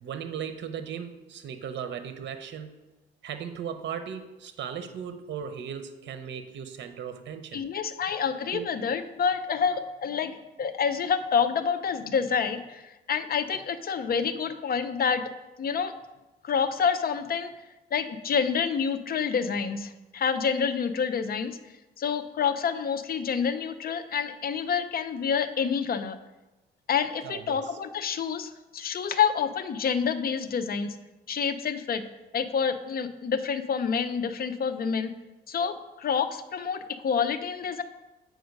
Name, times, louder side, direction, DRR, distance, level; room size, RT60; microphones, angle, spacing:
voice 1, 0.0-2.7 3.2-7.6 8.5-8.7 27.2-27.7, right 8 dB, 65° right, 9 dB, 0.8 m, -37 dB
voice 2, 7.5-15.2 15.6-15.9 16.4-17.5 17.9-21.5 22.0-26.2 26.9-31.0 31.3-32.0 32.3-35.1 35.5-37.8, left 6 dB, 50° left, 10 dB, 0.6 m, -28 dB
7.9 x 5.0 x 5.2 m, 1.1 s
cardioid pair, 90°, 20 cm